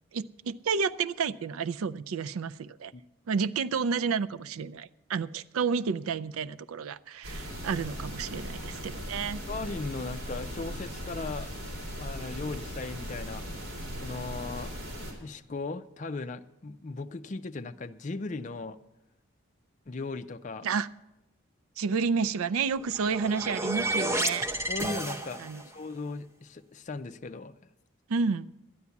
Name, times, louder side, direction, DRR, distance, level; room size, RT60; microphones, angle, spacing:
voice 1, 0.1-2.9 3.3-9.4 20.6-20.9 21.8-24.5 25.4-25.6 28.1-28.5, right 5 dB, 85° right, 17 dB, 0.4 m, -30 dB
sound 1, 7.2-15.1, equal, 70° right, 3.8 m, -38 dB
voice 2, 9.5-11.5 12.0-13.5 14.0-14.7 15.2-18.8 19.9-20.7 24.7-25.5 25.7-27.7, left 3 dB, 35° left, 9 dB, 0.4 m, -37 dB
sound 2, 22.7-25.7, right 1 dB, 15° right, 0.7 m, -31 dB
12.5 x 9.5 x 7.1 m, 0.95 s
head